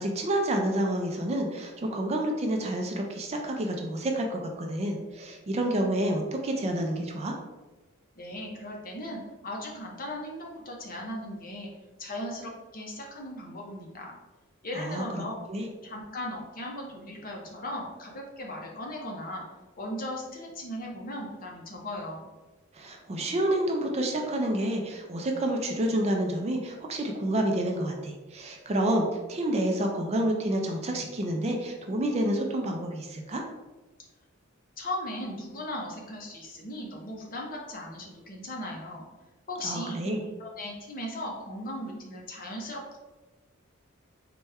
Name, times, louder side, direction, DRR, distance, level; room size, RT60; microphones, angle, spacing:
voice 1, 0.0-7.3 14.7-15.2 15.5-15.7 22.7-33.4 39.6-40.2, right 1 dB, 30° right, 2 dB, 0.4 m, -29 dB
voice 2, 8.2-11.7 12.0-14.1 14.6-15.3 15.8-19.4 19.8-22.3 34.8-39.0 39.5-40.0 40.4-43.0, left 1 dB, 40° left, -1 dB, 0.8 m, -37 dB
4.1 x 2.2 x 3.4 m, 1.2 s
head